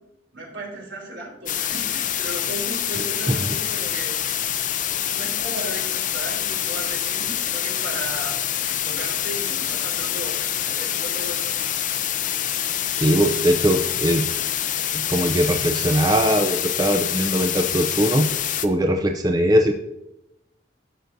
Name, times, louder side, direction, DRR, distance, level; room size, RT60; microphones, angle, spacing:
voice 1, 0.3-4.2 5.0-8.4 8.7-11.5, right 1 dB, 75° right, -2 dB, 3.2 m, -35 dB
sound 1, 1.5-18.7, left 10 dB, 45° left, 0.5 m, -26 dB
voice 2, 12.9-14.3 14.9-18.3 18.6-19.7, equal, 20° right, 4 dB, 0.5 m, -20 dB
13.0 x 6.6 x 2.6 m, 0.87 s
head